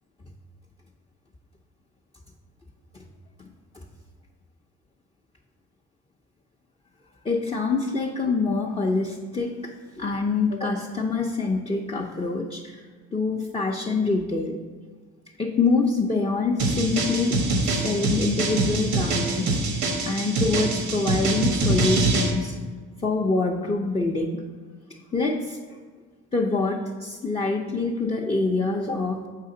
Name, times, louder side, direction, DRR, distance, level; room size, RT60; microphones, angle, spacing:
voice 1, 7.2-12.8 13.1-14.6 15.4-19.6 20.0-22.6 23.0-24.4 25.1-25.8 26.3-29.2, left 3 dB, 20° left, -2 dB, 0.6 m, -25 dB
sound 1, 16.6-22.3, right 2 dB, 90° right, 1.1 m, -24 dB
7.4 x 5.0 x 3.8 m, 1.5 s
cardioid pair, 90°, 30 cm